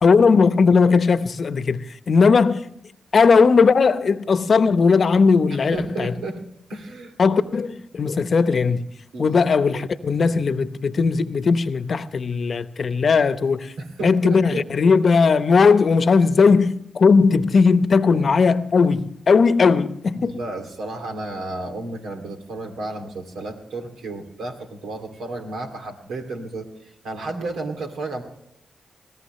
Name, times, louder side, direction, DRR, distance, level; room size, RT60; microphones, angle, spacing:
voice 1, 0.0-2.7 3.1-6.1 7.2-8.9 9.2-13.7 14.0-20.4, left 5 dB, 60° left, 0.9 m, -18 dB
voice 2, 5.7-6.4 6.7-7.1 7.4-7.5 9.1-9.4 13.8-14.6 20.1-28.2, right 2 dB, 85° right, 2.5 m, -32 dB
20.5 x 17.0 x 3.2 m
supercardioid pair, 45°, 0 cm